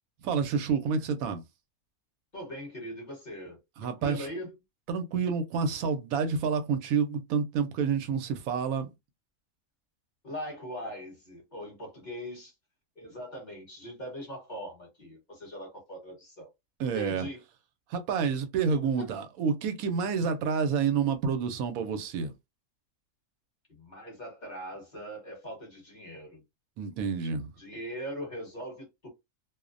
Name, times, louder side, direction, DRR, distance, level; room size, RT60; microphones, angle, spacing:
voice 1, 0.2-1.4 3.8-4.3 4.9-8.9 16.8-17.3 17.9-22.3 26.8-27.5, right 6 dB, 85° right, 1.0 m, -29 dB
voice 2, 2.3-4.6 10.2-12.5 13.0-16.5 16.8-17.4 19.0-19.2 23.7-26.4 27.6-29.1, equal, 40° left, 0.9 m, -41 dB
2.5 x 2.0 x 2.4 m
omnidirectional pair, 1.4 m